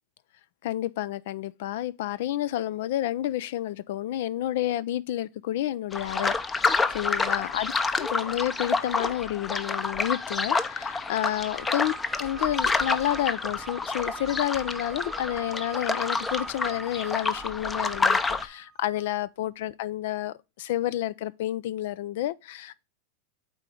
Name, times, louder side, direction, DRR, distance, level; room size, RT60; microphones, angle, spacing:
voice 1, 0.6-7.7 8.0-11.9 12.2-22.8, left 13 dB, 70° left, 0.4 m, -30 dB
sound 1, 5.9-18.4, left 4 dB, 15° left, 0.6 m, -28 dB
sound 2, 11.5-19.2, right 8 dB, 40° right, 0.5 m, -43 dB
8.2 x 3.9 x 3.3 m
hypercardioid pair, 115°, 0 cm